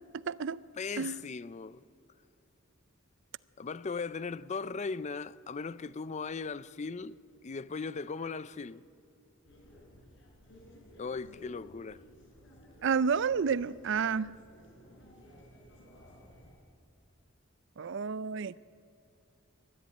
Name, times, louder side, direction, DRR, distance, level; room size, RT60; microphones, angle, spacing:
voice 1, 0.1-0.6 1.0-1.2 12.8-14.4 17.8-18.5, right 6 dB, 65° right, 0.5 m, -30 dB
voice 2, 0.8-1.8 3.6-8.8 11.0-12.0, left 4 dB, 35° left, 0.5 m, -38 dB
sound 1, 9.4-16.6, equal, 65° left, 4.7 m, -55 dB
21.0 x 13.5 x 9.6 m
head